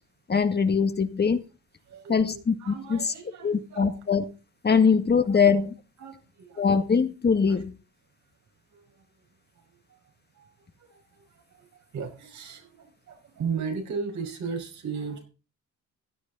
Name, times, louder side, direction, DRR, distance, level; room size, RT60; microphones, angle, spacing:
voice 1, 0.3-1.4 2.1-3.1 3.4-4.2 4.6-5.7 6.6-7.7, left 5 dB, 35° left, 1.8 m, -22 dB
voice 2, 1.9-3.9 5.3-5.4 6.0-6.7 7.5-7.6 8.7-9.3 9.5-15.3, right 5 dB, 70° right, 5.6 m, -37 dB
16.0 x 11.5 x 4.0 m
cardioid pair, 90°, 30 cm